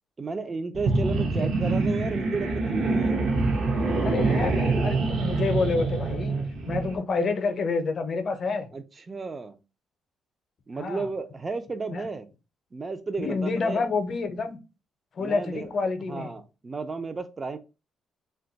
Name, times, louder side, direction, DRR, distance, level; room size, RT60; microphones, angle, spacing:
voice 1, 0.2-3.4 8.7-9.6 10.7-12.3 12.7-13.9 15.2-15.7 16.1-17.6, right 4 dB, 30° right, 0.4 m, -33 dB
sound 1, 0.7-7.0, right 3 dB, 60° right, 0.7 m, -25 dB
voice 2, 4.0-6.4 6.7-8.7 10.8-11.1 11.9-12.0 13.2-14.6 15.1-16.3, left 4 dB, 50° left, 0.6 m, -28 dB
2.5 x 2.3 x 3.8 m
cardioid pair, 90°, 0 cm